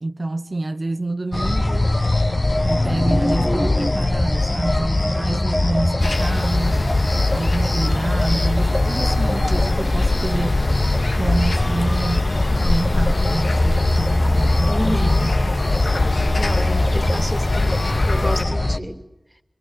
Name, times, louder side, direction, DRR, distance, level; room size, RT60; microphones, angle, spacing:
voice 1, 0.0-1.9 2.6-6.9 7.3-10.7 11.2-15.3 17.1-17.3, right 2 dB, 55° right, 1.0 m, -27 dB
sound 1, 1.3-18.8, left 2 dB, 40° left, 1.7 m, -21 dB
sound 2, 6.0-18.4, left 2 dB, 85° left, 2.6 m, -24 dB
voice 2, 14.7-15.3 16.4-19.0, equal, ahead, 2.9 m, -29 dB
25.0 x 23.5 x 9.5 m
wide cardioid pair, 40°, 0 cm